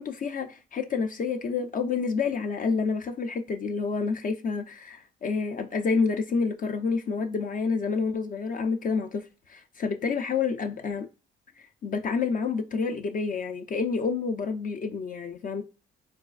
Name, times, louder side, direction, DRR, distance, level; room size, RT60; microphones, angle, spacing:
voice 1, 0.0-11.1 11.6-15.6, left 5 dB, 45° left, 0.4 m, -29 dB
4.0 x 2.3 x 2.3 m
cardioid pair, 90°, 20 cm